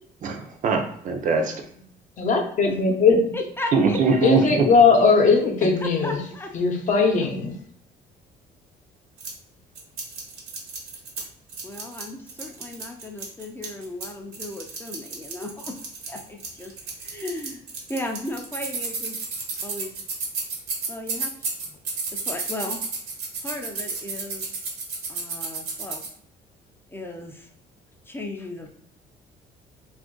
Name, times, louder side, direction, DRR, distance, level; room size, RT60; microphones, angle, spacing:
voice 1, 0.2-1.6 3.7-4.7 5.6-5.7, right 4 dB, 50° right, 4 dB, 0.6 m, -22 dB
voice 2, 2.2-3.3 4.2-6.2 6.5-7.5, left 4 dB, 50° left, 2 dB, 0.7 m, -19 dB
voice 3, 3.3-4.4 5.3-6.5 11.6-15.8 16.1-16.7 17.0-17.6 17.9-19.2 19.6-20.0 20.9-21.8 22.1-22.8 23.4-24.5 25.1-26.1 26.9-27.5 28.1-28.7, left 1 dB, 15° left, 3 dB, 0.4 m, -35 dB
sound 1, 9.2-9.3 9.8-11.2 11.5-14.1 14.3-26.1, right 4 dB, 75° right, 1.1 m, -32 dB
2.6 x 2.5 x 3.7 m, 0.62 s
cardioid pair, 110°, 17 cm